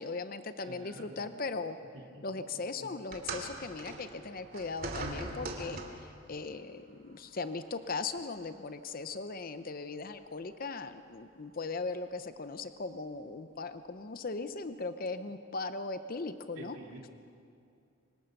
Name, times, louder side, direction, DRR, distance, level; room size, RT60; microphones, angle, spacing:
voice 1, 0.0-1.8 2.2-16.8, left 3 dB, 45° left, 10 dB, 0.7 m, -38 dB
voice 2, 0.6-1.3 2.1-2.2 2.5-2.9 16.5-17.1, right 1 dB, 65° right, -1 dB, 3.3 m, -49 dB
sound 1, 3.1-6.2 7.2-7.3 8.2-8.3, right 2 dB, 45° right, 2.6 m, -40 dB
25.0 x 18.5 x 6.6 m, 2.5 s
head